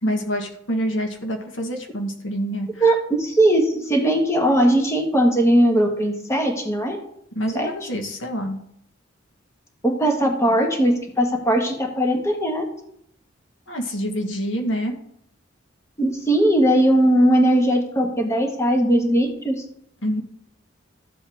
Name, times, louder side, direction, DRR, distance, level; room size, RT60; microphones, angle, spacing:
voice 1, 0.0-2.9 3.7-3.8 7.3-8.6 13.7-15.0 20.0-20.2, equal, 70° left, 4 dB, 1.4 m, -26 dB
voice 2, 2.8-7.0 7.5-7.7 9.8-12.6 16.0-19.5, right 1 dB, 15° left, 2 dB, 1.4 m, -19 dB
13.5 x 7.6 x 3.5 m, 0.72 s
head